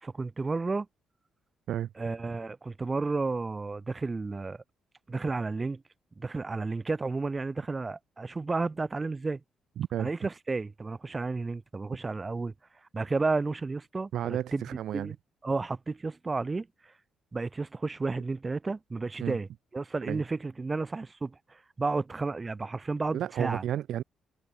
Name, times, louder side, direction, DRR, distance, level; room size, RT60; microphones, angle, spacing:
voice 1, 0.0-0.9 2.0-4.6 5.1-5.8 6.2-9.4 10.0-12.5 12.9-14.6 14.9-15.1 15.4-16.9 17.3-23.6, right 3 dB, 25° right, 2.7 m, -32 dB
voice 2, 9.8-10.1 14.1-15.1 19.2-19.4 20.1-20.2 23.1-24.0, right 11 dB, 70° right, 0.7 m, -32 dB
cardioid pair, 90°, 0 cm